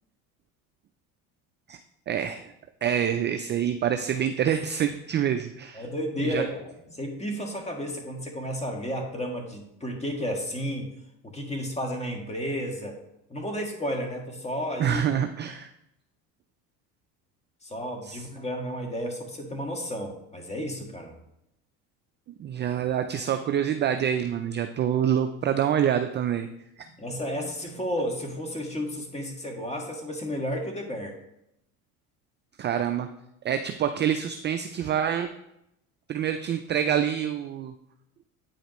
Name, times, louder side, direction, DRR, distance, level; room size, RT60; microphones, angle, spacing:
voice 1, 2.1-2.5 2.8-5.8 6.2-6.4 14.8-15.7 18.0-18.2 22.4-26.5 26.8-26.9 32.6-33.1 33.4-35.3 36.1-37.7, right 9 dB, 30° right, 8 dB, 0.3 m, -26 dB
voice 2, 5.7-10.9 11.2-13.0 13.3-15.0 17.6-21.2 27.0-31.1, equal, 15° left, 2 dB, 1.6 m, -32 dB
9.0 x 5.0 x 3.0 m, 0.82 s
supercardioid pair, 90°, 41 cm